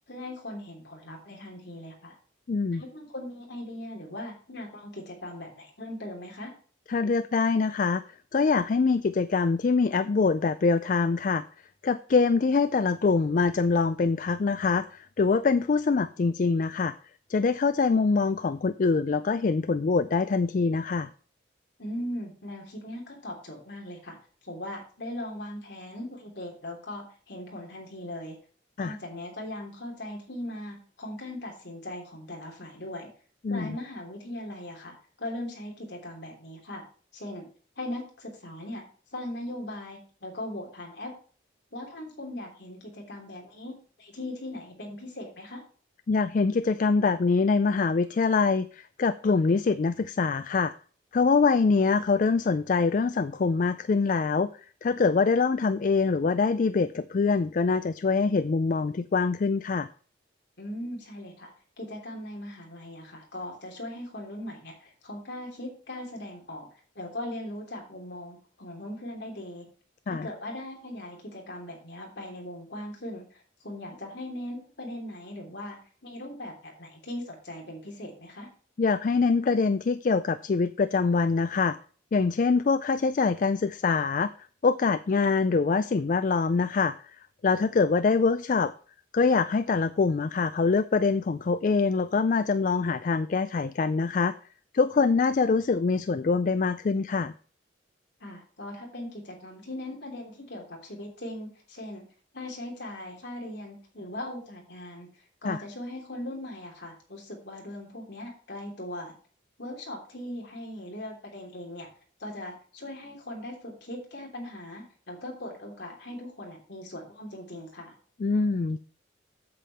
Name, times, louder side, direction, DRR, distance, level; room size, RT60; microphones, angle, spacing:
voice 1, 0.1-2.2 2.7-6.5 21.8-24.2 24.4-28.4 28.8-33.1 33.5-36.8 37.1-37.5 37.8-38.8 39.1-41.1 41.7-45.6 60.6-66.7 66.9-69.7 70.1-78.5 98.2-102.0 102.3-105.1 105.4-109.1 109.6-111.9 112.2-117.9, left 1 dB, 60° left, 0 dB, 3.1 m, -39 dB
voice 2, 2.5-2.8 6.9-8.0 8.3-11.4 11.8-16.9 17.3-21.1 28.8-29.0 33.4-33.8 46.1-50.7 51.1-54.5 54.8-59.9 70.1-70.3 78.8-81.8 82.1-84.3 84.6-88.7 89.1-94.3 94.7-97.3 105.4-105.6 118.2-118.8, left 4 dB, 45° left, 13 dB, 0.3 m, -24 dB
8.5 x 7.6 x 4.2 m, 0.42 s
head